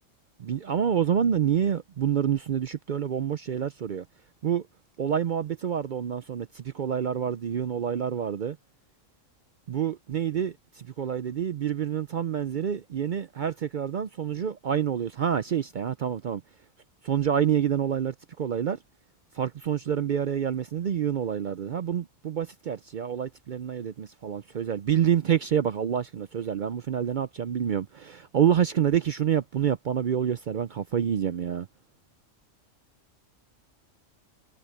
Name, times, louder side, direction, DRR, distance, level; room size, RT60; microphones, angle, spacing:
voice 1, 0.4-4.0 4.4-4.7 5.0-8.6 9.7-16.4 17.0-18.8 19.3-31.7, right 9 dB, 60° right, 0.5 m, -27 dB
omnidirectional pair, 1.4 m